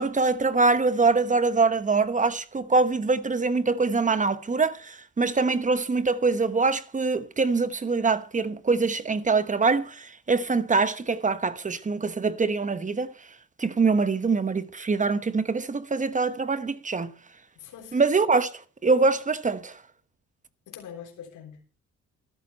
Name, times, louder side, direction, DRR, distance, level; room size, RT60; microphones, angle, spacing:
voice 1, 0.0-13.3 13.6-17.1 17.9-19.8, right 4 dB, 25° right, 1.1 m, -24 dB
voice 2, 17.6-18.0 20.7-21.8, left 8 dB, 80° left, 3.6 m, -44 dB
13.0 x 12.5 x 4.3 m
cardioid pair, 90°, 30 cm